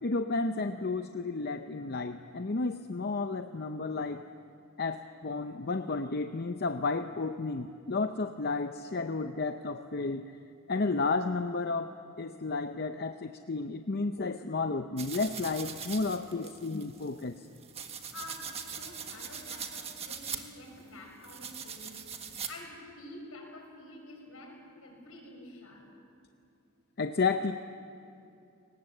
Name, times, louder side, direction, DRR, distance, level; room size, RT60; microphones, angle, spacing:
voice 1, 0.0-4.3 4.8-10.3 10.7-11.9 12.2-17.3 27.0-27.5, left 3 dB, 45° left, 7 dB, 0.7 m, -32 dB
sound 1, 15.0-22.5, right 7 dB, 30° right, 1.6 m, -41 dB
voice 2, 18.1-25.8, left 2 dB, 70° left, 1 dB, 6.6 m, -48 dB
29.0 x 19.5 x 7.9 m, 2.7 s
head